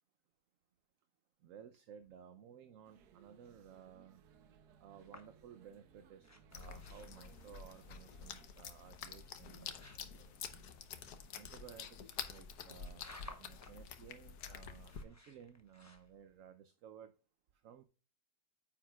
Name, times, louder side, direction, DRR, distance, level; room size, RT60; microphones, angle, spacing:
voice 1, 1.4-4.2 4.8-10.7 11.3-13.1 13.4-17.1 17.5-17.8, right 8 dB, 65° right, 9 dB, 1.0 m, -57 dB
sound 1, 2.8-8.5, right 7 dB, 85° right, 1.3 m, -65 dB
sound 2, 5.0-16.5, left 2 dB, 15° left, 0.8 m, -60 dB
sound 3, 6.5-15.0, left 7 dB, 80° left, 1.4 m, -49 dB
9.3 x 7.3 x 2.3 m, 0.35 s
omnidirectional pair, 1.7 m